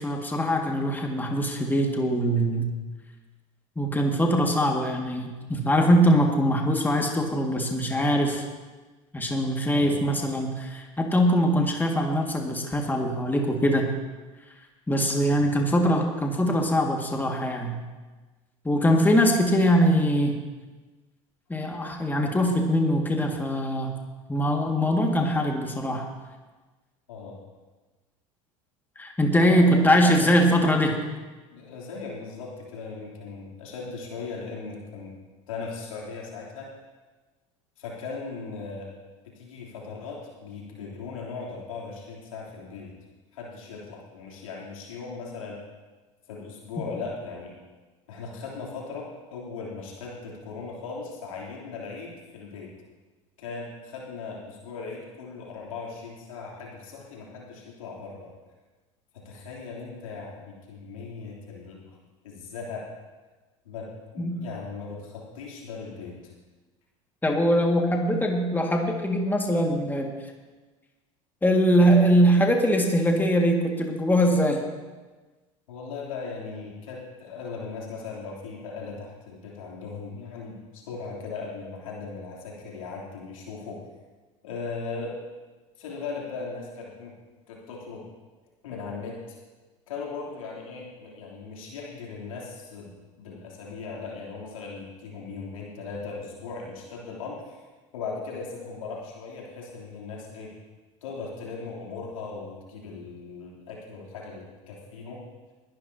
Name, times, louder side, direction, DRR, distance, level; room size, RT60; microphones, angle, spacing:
voice 1, 0.0-2.7 3.8-8.4 9.1-13.9 14.9-17.8 18.6-20.4 21.5-23.9 24.3-26.0 29.0-31.0 64.2-64.4 67.2-70.1 71.4-74.6, equal, 10° left, 1 dB, 2.0 m, -22 dB
voice 2, 29.5-30.5 31.5-35.1 35.5-36.7 37.8-38.9 39.3-42.9 43.3-45.6 46.3-47.5 48.1-52.7 53.4-58.3 59.2-62.0 62.2-62.9 63.6-63.9 64.1-66.1 75.7-83.8 84.4-85.2 85.8-87.1 87.5-88.0 88.6-89.4 89.9-97.6 97.9-100.5 101.0-105.2, left 4 dB, 80° left, -3 dB, 3.3 m, -38 dB
21.0 x 12.0 x 2.9 m, 1.3 s
hypercardioid pair, 75°, 17 cm